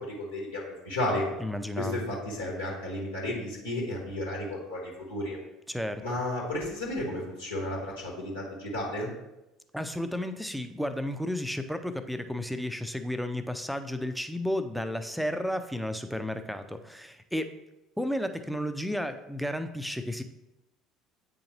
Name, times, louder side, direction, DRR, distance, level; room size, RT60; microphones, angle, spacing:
voice 1, 0.0-1.2 1.8-5.4 6.0-9.1, left 1 dB, 80° left, -4 dB, 1.4 m, -33 dB
voice 2, 1.4-2.0 5.7-6.0 9.7-17.5 18.0-20.2, left 1 dB, ahead, 8 dB, 0.5 m, -32 dB
8.5 x 3.8 x 2.9 m, 0.92 s
figure-of-eight pair, 65°, 0 cm